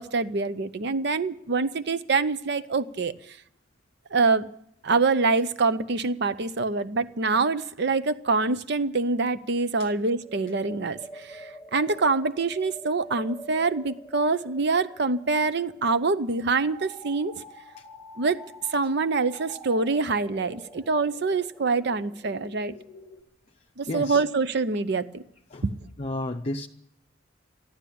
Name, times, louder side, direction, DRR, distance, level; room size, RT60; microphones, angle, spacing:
voice 1, 0.0-3.1 4.1-4.5 4.8-17.3 18.2-18.4 18.7-22.7 23.8-25.2 25.6-25.7, right 4 dB, 60° right, 14 dB, 0.7 m, -25 dB
sound 1, 9.9-23.2, right 1 dB, 5° right, 1.2 m, -46 dB
voice 2, 23.9-24.2 25.5-25.6 26.0-26.7, left 2 dB, 35° left, 1 dB, 0.6 m, -31 dB
14.0 x 12.0 x 8.5 m, 0.74 s
head